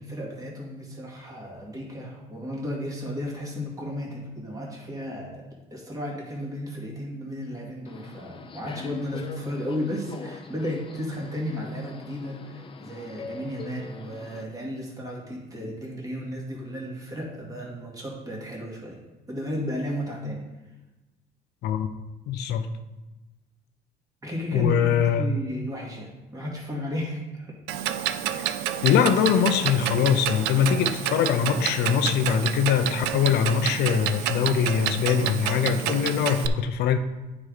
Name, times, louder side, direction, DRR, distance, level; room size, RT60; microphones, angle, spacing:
voice 1, 0.0-5.4 5.7-19.0 19.3-20.4 24.2-27.6, equal, 20° right, -3 dB, 2.2 m, -34 dB
Subway metro underground, 7.9-14.4, left 5 dB, 30° left, 0.6 m, -42 dB
voice 2, 22.3-22.7 24.5-25.3 28.4-28.5 28.8-37.0, left 8 dB, 75° left, 9 dB, 0.7 m, -22 dB
Clock, 27.7-36.5, right 11 dB, 90° right, 0.4 m, -29 dB
9.5 x 4.8 x 4.1 m, 1.1 s
cardioid pair, 110°, 17 cm